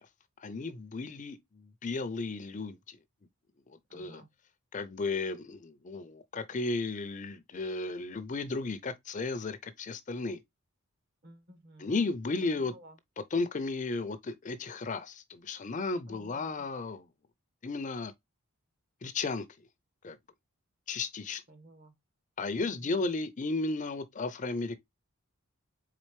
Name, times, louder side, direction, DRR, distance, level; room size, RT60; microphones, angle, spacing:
voice 1, 0.4-3.0 3.7-4.2 4.7-10.4 11.8-12.7 13.3-17.1 17.6-18.1 19.0-19.5 20.0-20.2 20.9-21.4 22.4-24.8, left 3 dB, 35° left, 0.5 m, -34 dB
voice 2, 3.9-4.3 11.2-12.0 12.4-12.9 16.0-16.7 21.5-21.9 22.6-23.1, right 1 dB, 45° right, 1.2 m, -54 dB
4.2 x 3.9 x 3.2 m
head